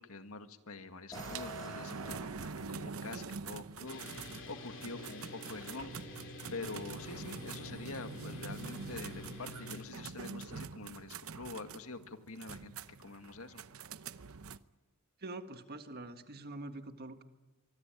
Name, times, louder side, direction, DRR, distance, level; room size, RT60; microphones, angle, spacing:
voice 1, 0.0-4.1 4.5-5.9 6.5-12.7 13.0-13.6, left 3 dB, 80° left, 8 dB, 2.0 m, -46 dB
sound 1, 1.1-4.2, left 2 dB, 20° left, 2.8 m, -51 dB
sound 2, 1.1-14.6, right 5 dB, 70° right, 0.8 m, -45 dB
sound 3, 3.9-9.9, left 3 dB, 60° left, 2.9 m, -48 dB
voice 2, 15.2-17.2, right 2 dB, 45° right, 8 dB, 1.7 m, -45 dB
24.5 x 24.0 x 9.2 m, 1.1 s
head